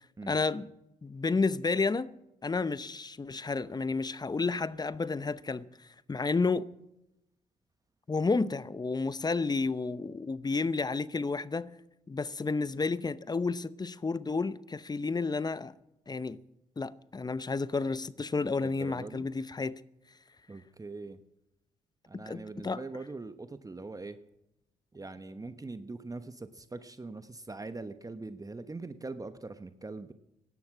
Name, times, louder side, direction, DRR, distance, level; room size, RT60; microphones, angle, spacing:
voice 1, 0.3-0.7 1.0-2.1 2.4-5.7 6.1-6.7 8.1-11.7 12.1-15.7 16.1-16.4 16.8-19.8 22.1-22.8, left 4 dB, 25° left, 0.8 m, -31 dB
voice 2, 18.6-19.3 20.5-21.2 22.1-24.2 24.9-30.1, right 3 dB, 20° right, 1.0 m, -42 dB
17.0 x 12.0 x 6.1 m
hypercardioid pair, 50°, 16 cm